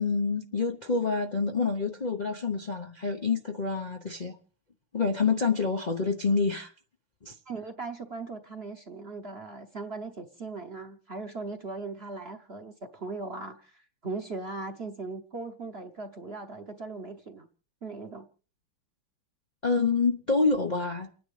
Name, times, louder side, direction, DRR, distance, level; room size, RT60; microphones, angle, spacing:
voice 1, 0.0-4.4 4.9-6.7 7.2-7.4 19.6-21.1, left 4 dB, 90° left, 0.4 m, -27 dB
voice 2, 7.5-17.5 17.8-18.3, right 3 dB, 45° right, 0.8 m, -39 dB
29.5 x 10.0 x 3.3 m
omnidirectional pair, 2.4 m